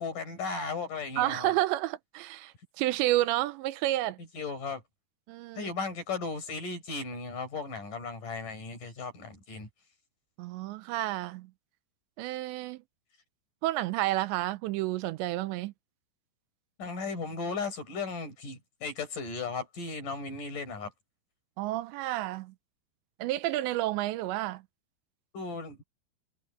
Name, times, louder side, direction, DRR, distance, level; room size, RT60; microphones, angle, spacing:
voice 1, 0.0-1.5 4.3-4.8 5.6-9.7 16.8-20.9 25.3-25.8, left 4 dB, 45° left, 7.3 m, -36 dB
voice 2, 1.2-4.2 5.3-5.7 10.4-11.5 12.2-12.8 13.6-15.7 21.6-22.5 23.2-24.6, right 16 dB, 85° right, 2.9 m, -30 dB
omnidirectional pair, 5.2 m